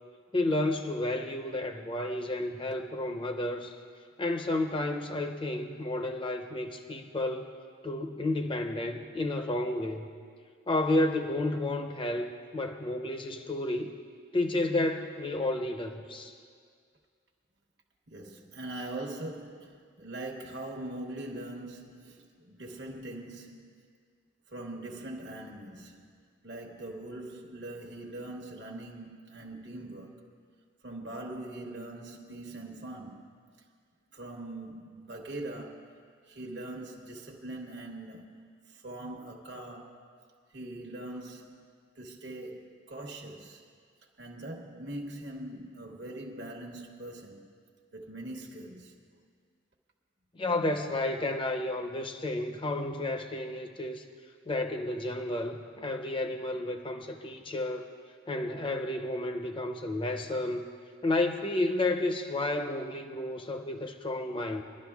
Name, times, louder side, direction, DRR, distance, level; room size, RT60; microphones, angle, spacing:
voice 1, 0.3-3.8 4.2-7.5 7.8-10.1 10.7-13.9 14.3-16.4 50.3-54.0 54.5-57.9 58.3-60.6 61.0-64.6, left 2 dB, 25° left, 0.6 m, -31 dB
voice 2, 18.1-23.7 24.5-26.1 26.4-30.2 30.8-33.3 34.1-36.0 36.2-40.0 40.5-41.7 41.9-43.6 44.2-47.5 47.9-48.9, right 1 dB, 60° right, 1.1 m, -42 dB
26.0 x 11.5 x 2.3 m
head